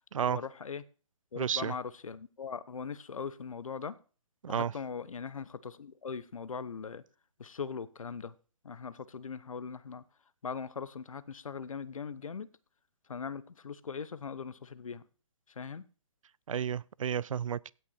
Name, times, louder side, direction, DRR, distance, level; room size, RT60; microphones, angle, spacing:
voice 1, 0.3-0.8 1.3-4.0 4.5-7.0 7.4-8.3 8.6-10.0 10.4-12.5 13.1-15.1 15.5-15.8, left 6 dB, 80° left, 0.9 m, -40 dB
voice 2, 1.4-1.7 4.4-4.7 16.5-17.7, right 8 dB, 75° right, 0.4 m, -31 dB
16.0 x 6.0 x 4.3 m
hypercardioid pair, 155°, 17 cm